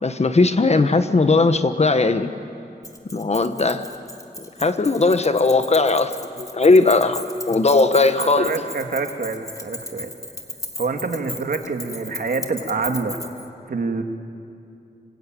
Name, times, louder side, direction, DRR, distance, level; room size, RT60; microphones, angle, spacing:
voice 1, 0.0-2.3 3.1-3.8 4.6-8.5, left 3 dB, 40° left, 9 dB, 1.3 m, -18 dB
Keys jangling, 2.8-13.5, left 1 dB, 20° left, 2.1 m, -36 dB
voice 2, 8.2-10.1 10.8-13.2 13.7-14.0, right 4 dB, 70° right, 5 dB, 2.2 m, -26 dB
25.5 x 24.5 x 9.2 m, 2.5 s
wide cardioid pair, 95°, 16 cm